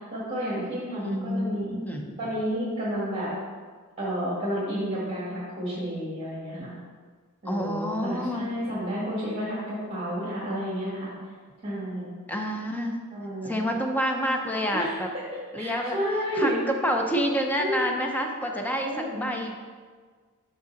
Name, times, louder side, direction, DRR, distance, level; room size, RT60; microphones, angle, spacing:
voice 1, 0.1-1.8 2.2-3.3 4.0-6.7 7.4-11.1 11.6-12.1 13.1-13.5 14.7-15.0 15.6-16.6 17.5-17.9 18.8-19.2, equal, 30° right, -9 dB, 1.7 m, -31 dB
voice 2, 1.0-2.2 7.5-8.5 12.3-13.0 13.4-15.1 15.5-16.0 16.3-18.9 19.2-19.5, equal, 10° left, 2 dB, 0.5 m, -28 dB
5.8 x 5.4 x 3.9 m, 1.5 s
head